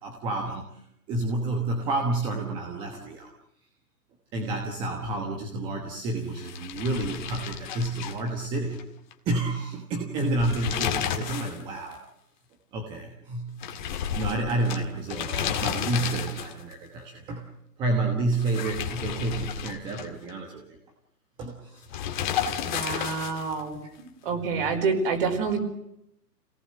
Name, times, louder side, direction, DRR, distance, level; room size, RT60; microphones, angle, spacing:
voice 1, 0.0-0.8 1.1-3.3 4.3-8.8 9.2-12.0 12.7-13.6 14.1-17.5 17.8-20.6 21.4-21.8 22.2-22.3 23.8-23.9, right 2 dB, 10° right, 3 dB, 1.2 m, -30 dB
sound 1, 6.3-8.8 9.1-9.2 10.2-11.6 11.9-12.0 13.6-16.7 18.3-20.3 21.9-23.6, left 9 dB, 30° left, 1.9 m, -32 dB
voice 2, 22.3-23.8 24.2-25.6, right 5 dB, 35° right, 4 dB, 4.8 m, -28 dB
27.5 x 18.5 x 7.7 m, 0.79 s
hypercardioid pair, 155°, 49 cm